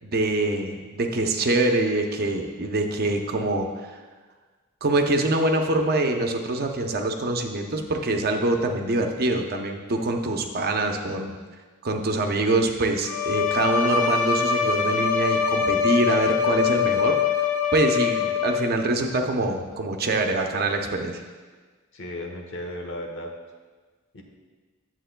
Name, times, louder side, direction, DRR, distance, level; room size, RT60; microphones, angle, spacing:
voice 1, 0.0-3.7 4.8-11.3 11.8-17.2 17.7-21.2, right 2 dB, 50° right, 4 dB, 0.6 m, -24 dB
Bowed string instrument, 13.0-18.9, left 7 dB, 80° left, 0.7 m, -23 dB
voice 2, 21.9-23.3 24.1-24.2, left 1 dB, 65° left, 2 dB, 1.0 m, -35 dB
10.0 x 7.5 x 2.2 m, 1.4 s
head